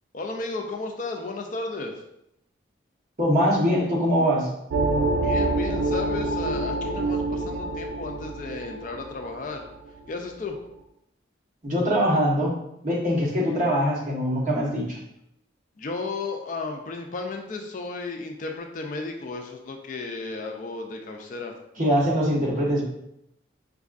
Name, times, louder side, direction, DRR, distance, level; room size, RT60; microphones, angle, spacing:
voice 1, 0.1-2.0 5.2-9.7 10.1-10.6 15.8-22.2, left 3 dB, 40° left, 3 dB, 0.3 m, -34 dB
voice 2, 3.2-4.5 11.6-12.5 12.8-15.0 21.8-22.8, equal, 45° right, -5 dB, 1.1 m, -22 dB
sound 1, 4.7-10.0, right 2 dB, 85° right, 0.4 m, -26 dB
5.1 x 2.4 x 2.4 m, 0.80 s
head